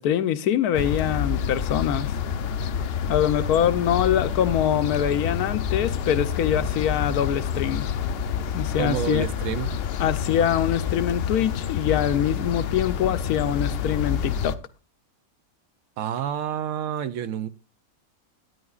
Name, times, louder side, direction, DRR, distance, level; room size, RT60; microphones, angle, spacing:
voice 1, 0.0-2.1 3.1-7.9 8.5-9.3 10.0-14.6, left 10 dB, 90° left, 1.2 m, -24 dB
sound 1, 0.7-14.5, left 7 dB, 70° left, 0.6 m, -28 dB
voice 2, 8.8-9.8 16.0-17.5, right 10 dB, 70° right, 0.9 m, -28 dB
12.5 x 9.6 x 2.4 m
omnidirectional pair, 1.5 m